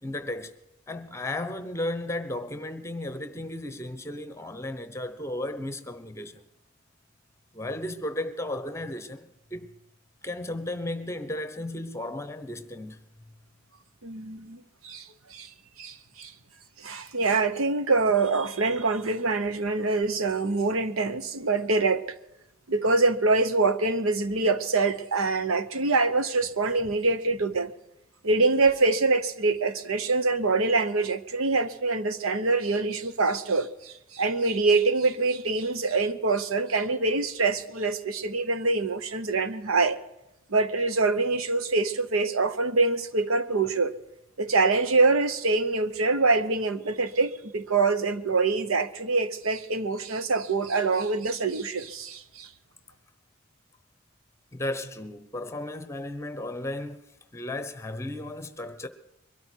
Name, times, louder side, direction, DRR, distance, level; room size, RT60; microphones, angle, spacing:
voice 1, 0.0-0.5 0.9-6.4 7.5-9.7 10.2-13.1 54.5-57.0 57.3-58.9, left 1 dB, 15° left, 1.0 m, -34 dB
voice 2, 14.0-15.5 15.8-16.3 16.8-22.0 22.7-27.7 28.2-40.0 40.5-43.9 44.4-52.5, right 3 dB, 85° right, 1.0 m, -25 dB
22.5 x 13.0 x 4.6 m
head